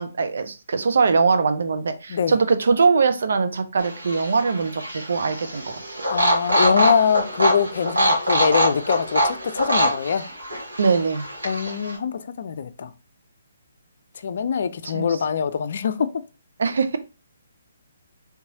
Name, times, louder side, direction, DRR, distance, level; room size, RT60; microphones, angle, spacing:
voice 1, 0.0-5.8 10.8-11.3 14.8-15.2 16.6-17.0, right 4 dB, 65° right, 0.5 m, -22 dB
sound 1, 3.8-11.9, equal, 85° right, 1.8 m, -24 dB
voice 2, 6.1-10.3 11.4-12.9 14.2-16.1, left 6 dB, 55° left, 0.4 m, -23 dB
3.6 x 3.0 x 2.8 m
figure-of-eight pair, 140°, 0 cm